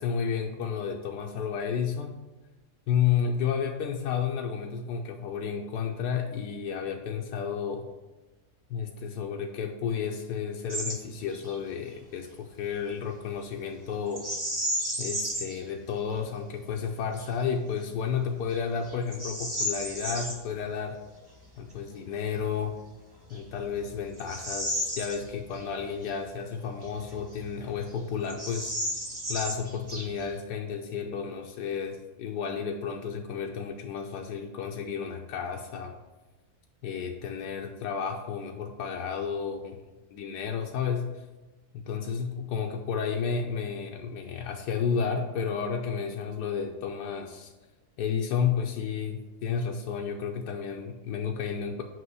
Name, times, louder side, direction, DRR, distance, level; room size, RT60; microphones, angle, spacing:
voice 1, 0.0-2.1 2.9-7.9 8.7-14.3 15.0-21.0 21.6-22.7 23.3-28.7 29.3-35.9 36.8-39.8 40.1-41.2 41.7-47.5 48.0-51.8, left 7 dB, 85° left, 2 dB, 1.2 m, -32 dB
Bird vocalization bird call bird song, 10.7-11.0 11.3-11.6 14.1-15.6 16.2-16.3 16.9-17.3 17.8-17.9 18.5-20.4 22.5-22.6 23.2-25.7 26.0-26.1 26.8-27.6 27.9-28.0 28.2-30.4, equal, 15° right, 0.9 m, -33 dB
7.6 x 2.9 x 5.5 m, 1.1 s
omnidirectional pair, 1.7 m